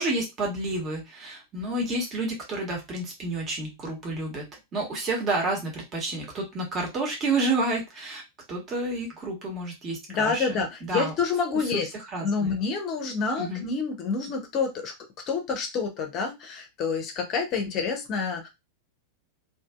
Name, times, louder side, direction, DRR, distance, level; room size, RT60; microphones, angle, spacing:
voice 1, 0.0-4.5 4.7-8.2 8.5-11.1 11.7-12.6 13.4-13.6, right 2 dB, 30° right, -1 dB, 1.1 m, -30 dB
voice 2, 10.1-11.9 12.2-14.9 15.3-18.5, left 5 dB, 35° left, 4 dB, 0.6 m, -28 dB
2.7 x 2.5 x 2.3 m, 0.22 s
figure-of-eight pair, 90°, 0 cm